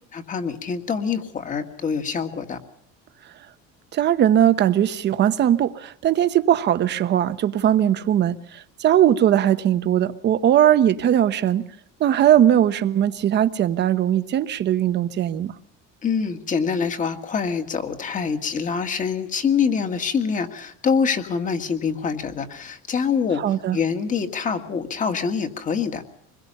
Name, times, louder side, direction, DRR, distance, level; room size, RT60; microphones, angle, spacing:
voice 1, 0.1-2.6 16.0-26.0, left 6 dB, 25° left, 1.9 m, -25 dB
voice 2, 3.9-11.7 12.0-15.5 23.4-23.8, right 11 dB, 30° right, 1.0 m, -19 dB
26.0 x 21.5 x 5.4 m
cardioid pair, 180°, 32 cm